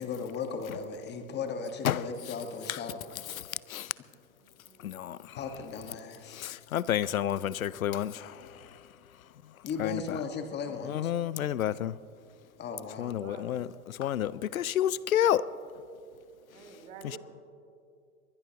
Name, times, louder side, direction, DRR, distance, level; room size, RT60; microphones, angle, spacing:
voice 1, 0.0-3.1 5.3-6.4 9.6-11.1 12.6-13.2, left 5 dB, 25° left, 1.5 m, -36 dB
voice 2, 3.4-3.9 4.8-5.4 6.3-8.5 9.8-10.2 10.8-11.9 13.0-15.5 17.0-17.2, left 11 dB, 85° left, 0.6 m, -30 dB
voice 3, 4.4-4.9 13.0-13.5 16.4-17.2, right 6 dB, 65° right, 3.6 m, -49 dB
22.5 x 21.0 x 2.9 m
hypercardioid pair, 110°, 41 cm